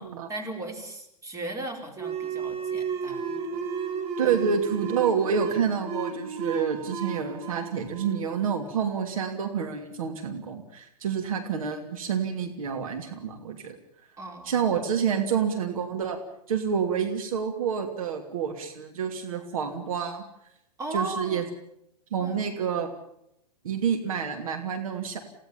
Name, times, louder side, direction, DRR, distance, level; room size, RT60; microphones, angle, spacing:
voice 1, 0.0-3.6 4.3-4.4 14.2-14.7 20.8-21.4 22.2-22.5, right 2 dB, 15° right, 4 dB, 4.6 m, -37 dB
sound 1, 2.0-9.2, right 5 dB, 30° right, 2.6 m, -33 dB
voice 2, 4.2-13.8 14.4-16.2 16.5-20.2 20.9-21.4 22.1-22.9 23.6-25.2, right 7 dB, 60° right, 5 dB, 2.7 m, -28 dB
29.0 x 17.0 x 7.2 m, 0.78 s
figure-of-eight pair, 105°, 20 cm